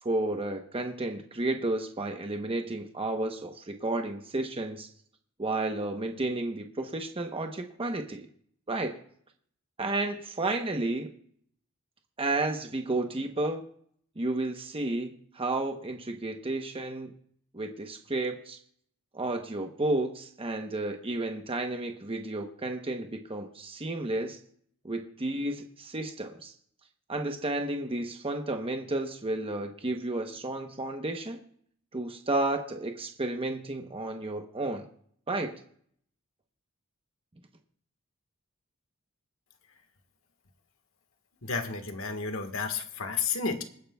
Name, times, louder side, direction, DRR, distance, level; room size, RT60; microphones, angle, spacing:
voice 1, 0.0-4.9 5.4-8.3 8.7-9.0 9.8-11.1 12.2-13.7 14.2-17.1 17.5-18.6 19.1-24.4 24.8-26.5 27.1-31.4 31.9-34.9 35.3-35.6, right 2 dB, 25° right, 4 dB, 0.9 m, -32 dB
voice 2, 41.4-43.6, left 5 dB, 70° left, 6 dB, 1.5 m, -31 dB
26.0 x 9.6 x 2.3 m, 0.62 s
head